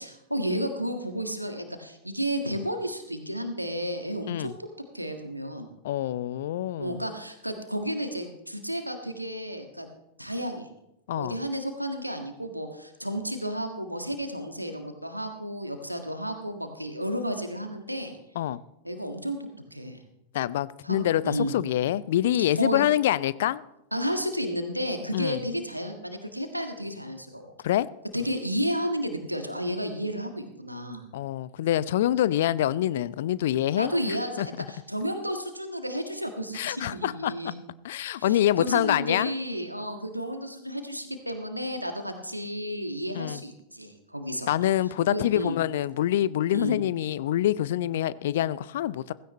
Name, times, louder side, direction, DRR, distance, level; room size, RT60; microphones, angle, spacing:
voice 1, 0.0-4.5 4.9-5.7 6.8-9.9 10.2-10.7 11.1-18.1 18.8-20.0 20.8-21.5 22.4-22.8 23.9-27.5 28.1-31.0 33.8-37.5 38.2-44.5 45.1-45.6 46.5-46.8, equal, 90° right, 1.6 m, -32 dB
voice 2, 5.8-7.0 11.1-11.4 18.4-18.6 20.3-23.6 25.1-25.4 27.6-27.9 31.1-34.5 36.5-37.5 37.8-39.3 43.1-43.4 44.5-49.1, left 12 dB, 55° left, 0.4 m, -26 dB
16.5 x 15.5 x 3.2 m
figure-of-eight pair, 90°, 0 cm